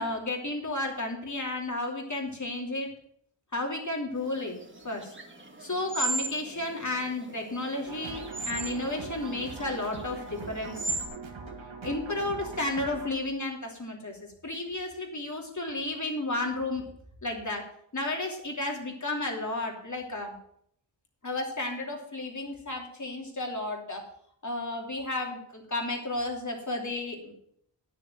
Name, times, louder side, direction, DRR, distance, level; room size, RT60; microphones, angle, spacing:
voice 1, 0.0-2.9 3.5-4.6 4.8-5.1 5.6-10.9 11.8-14.2 14.4-16.8 17.2-17.6 17.9-20.3 21.2-24.0 24.4-27.3, left 2 dB, 40° left, 1 dB, 2.9 m, -32 dB
sound 1, 4.3-11.1, right 3 dB, 25° right, 1.7 m, -37 dB
sound 2, 7.9-13.1, right 4 dB, 75° right, 2.0 m, -41 dB
10.0 x 6.6 x 7.3 m, 0.69 s
wide cardioid pair, 65°, 46 cm